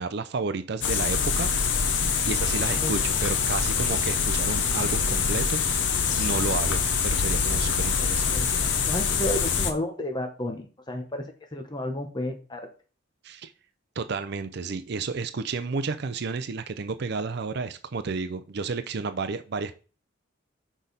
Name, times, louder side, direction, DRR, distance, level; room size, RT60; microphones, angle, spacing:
voice 1, 0.0-1.5 2.3-5.9 6.1-8.5 13.2-13.5 14.0-19.7, right 4 dB, 60° right, 11 dB, 0.5 m, -31 dB
sound 1, 0.8-9.7, left 6 dB, 65° left, 0.8 m, -25 dB
voice 2, 7.9-11.2 11.5-12.7, left 1 dB, 20° left, 4 dB, 1.0 m, -32 dB
6.1 x 5.1 x 4.1 m, 0.36 s
head